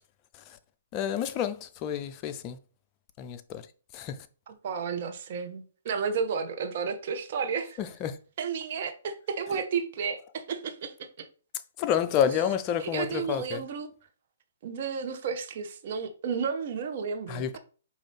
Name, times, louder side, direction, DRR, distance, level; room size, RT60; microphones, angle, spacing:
voice 1, 0.9-2.6 3.2-3.6 3.9-4.2 7.8-8.2 11.8-13.6 17.3-17.6, left 9 dB, 30° left, 0.4 m, -29 dB
voice 2, 4.5-7.8 8.4-11.3 12.8-13.9 14.6-17.6, right 6 dB, 50° right, 0.8 m, -32 dB
5.1 x 2.6 x 3.3 m
hypercardioid pair, 130°, 0 cm